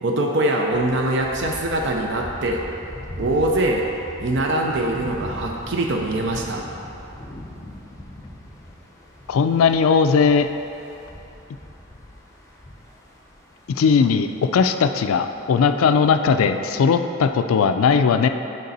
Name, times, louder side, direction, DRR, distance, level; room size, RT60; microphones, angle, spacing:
voice 1, 0.0-2.6 3.2-3.8 4.2-6.6, right 1 dB, 60° right, 1 dB, 0.5 m, -23 dB
sound 1, 0.7-17.0, left 1 dB, 15° left, 0.7 m, -40 dB
voice 2, 9.3-10.5 13.8-18.3, left 5 dB, 80° left, 8 dB, 0.3 m, -18 dB
6.5 x 5.2 x 4.1 m, 2.8 s
head